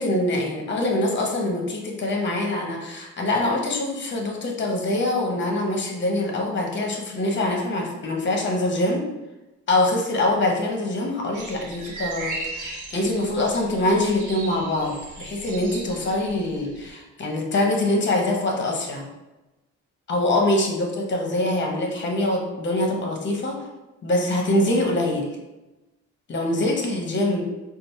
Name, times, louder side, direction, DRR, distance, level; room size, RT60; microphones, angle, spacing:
voice 1, 0.0-9.0 9.7-19.1 20.1-23.7 24.0-25.3 26.3-27.4, left 1 dB, 40° left, 1 dB, 0.9 m, -24 dB
sound 1, 11.3-16.9, right 2 dB, 75° right, 0.9 m, -37 dB
4.1 x 2.0 x 3.1 m, 1.0 s
cardioid pair, 90°, 30 cm